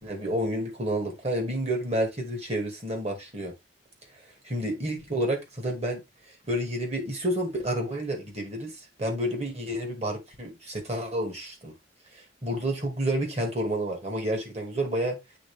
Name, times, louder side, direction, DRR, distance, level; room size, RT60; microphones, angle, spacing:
voice 1, 0.0-3.5 4.5-6.0 6.5-11.7 12.1-15.2, right 1 dB, 35° right, 2.4 m, -30 dB
8.5 x 3.9 x 3.6 m
head